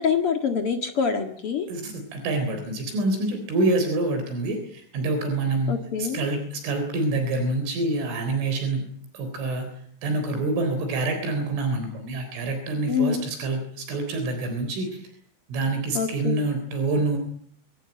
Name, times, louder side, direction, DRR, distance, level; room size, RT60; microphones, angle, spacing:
voice 1, 0.0-1.7 5.7-6.2 12.9-13.3 15.9-16.4, left 6 dB, 70° left, 6 dB, 1.3 m, -25 dB
voice 2, 1.7-8.8 9.1-9.7 10.0-15.1 15.5-17.2, right 2 dB, 75° right, 7 dB, 6.2 m, -26 dB
26.0 x 18.0 x 9.0 m, 0.62 s
omnidirectional pair, 5.6 m